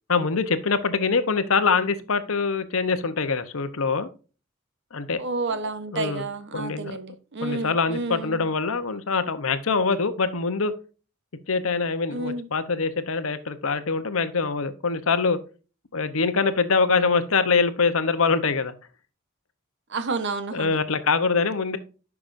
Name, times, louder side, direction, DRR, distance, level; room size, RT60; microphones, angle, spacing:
voice 1, 0.1-4.1 4.9-5.2 5.5-5.6 5.9-6.2 6.5-7.0 7.4-10.7 11.5-15.4 15.9-18.7 20.5-21.8, left 4 dB, 65° left, 0.9 m, -24 dB
voice 2, 5.2-8.5 12.1-12.5 19.9-20.8, right 3 dB, 55° right, 0.9 m, -30 dB
9.8 x 6.0 x 2.6 m
head